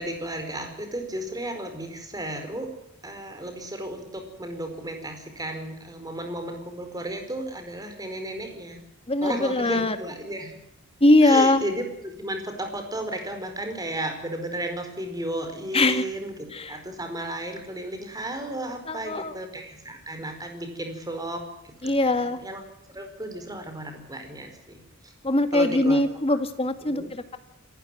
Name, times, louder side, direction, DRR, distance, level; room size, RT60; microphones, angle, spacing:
voice 1, 0.0-2.7 3.0-8.8 9.2-10.6 11.2-16.3 16.7-22.6 22.9-25.1 25.5-26.0 26.3-26.4 26.8-27.1, right 1 dB, 15° right, 6 dB, 4.8 m, -34 dB
voice 2, 9.1-10.0 11.0-11.6 15.7-16.0 16.5-16.8 18.9-19.3 21.8-22.4 25.2-27.4, left 2 dB, 25° left, 9 dB, 1.9 m, -21 dB
27.5 x 15.0 x 7.8 m, 0.87 s
head